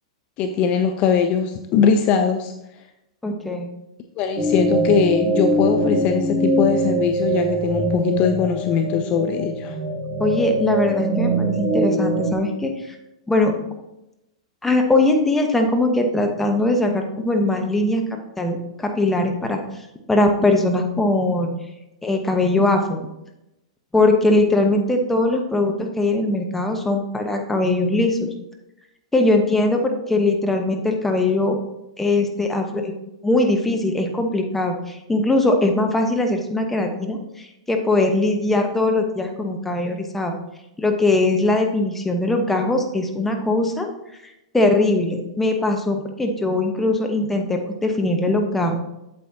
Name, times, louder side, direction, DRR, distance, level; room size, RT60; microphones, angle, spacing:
voice 1, 0.4-2.5 4.2-9.8, left 6 dB, 35° left, 6 dB, 0.6 m, -20 dB
voice 2, 3.2-3.7 10.2-13.0 13.3-13.6 14.6-18.0 18.4-19.6 20.1-21.5 22.0-23.1 23.9-28.3 29.1-31.6 32.0-32.9 33.2-40.3 40.8-43.9 44.5-48.8, left 2 dB, 5° left, 3 dB, 1.1 m, -20 dB
sound 1, 4.4-12.3, right 1 dB, 20° right, 1.8 m, -23 dB
8.5 x 7.6 x 2.8 m, 0.90 s
figure-of-eight pair, 105°, 3 cm